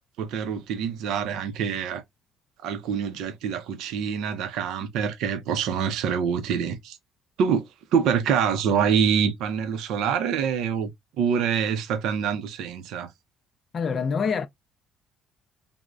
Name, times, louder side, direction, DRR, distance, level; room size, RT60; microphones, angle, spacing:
voice 1, 0.2-2.0 2.6-7.0 7.4-7.6 7.9-10.9 11.2-13.1, right 7 dB, 75° right, 0.5 m, -25 dB
voice 2, 13.7-14.5, left 6 dB, 35° left, 0.4 m, -25 dB
3.4 x 2.1 x 2.4 m
cardioid pair, 140°, 0 cm